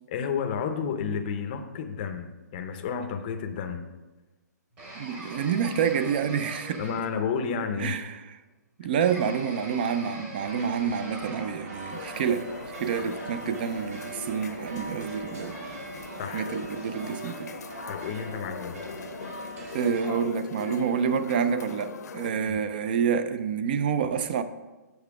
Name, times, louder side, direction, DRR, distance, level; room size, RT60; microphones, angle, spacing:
voice 1, 0.1-3.9 6.8-7.9 16.2-16.5 17.9-18.8 22.4-22.6, left 6 dB, 25° left, 0.6 m, -31 dB
Pick Slides, 4.8-7.3 9.0-11.6, right 1 dB, 15° right, 1.1 m, -43 dB
voice 2, 5.0-6.8 7.8-8.4 8.8-12.5 12.8-15.7 16.3-17.5 19.7-24.4, right 7 dB, 30° right, 0.4 m, -28 dB
sound 1, 10.4-20.1, right 3 dB, 55° right, 2.3 m, -42 dB
sound 2, 11.9-22.3, left 5 dB, 65° left, 0.7 m, -40 dB
7.1 x 6.5 x 4.8 m
hypercardioid pair, 165°, 10 cm